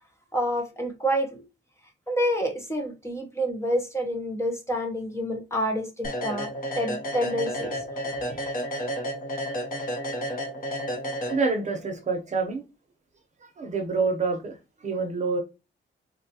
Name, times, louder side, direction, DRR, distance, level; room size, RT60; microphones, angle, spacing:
voice 1, 0.3-1.4 2.1-6.5 6.8-7.7, equal, 15° left, 0.7 m, -28 dB
sound 1, 6.0-11.8, equal, 45° left, 0.9 m, -31 dB
voice 2, 11.3-12.6 13.4-15.4, right 4 dB, 35° right, 0.7 m, -27 dB
4.1 x 2.3 x 2.7 m
wide cardioid pair, 160°, 19 cm